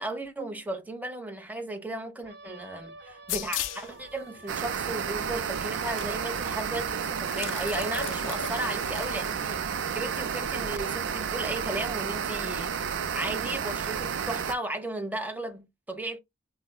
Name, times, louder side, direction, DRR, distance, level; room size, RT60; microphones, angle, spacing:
voice 1, 0.0-9.6 9.9-16.2, right 1 dB, 10° right, 0.7 m, -35 dB
sound 1, 2.2-11.0, right 3 dB, 60° right, 0.9 m, -49 dB
sound 2, 3.3-3.9 4.7-4.8 6.0-6.1 6.3-6.4 7.2-9.3, left 9 dB, 90° left, 0.4 m, -36 dB
sound 3, 4.5-14.6, right 7 dB, 85° right, 0.4 m, -31 dB
5.4 x 2.0 x 2.2 m
head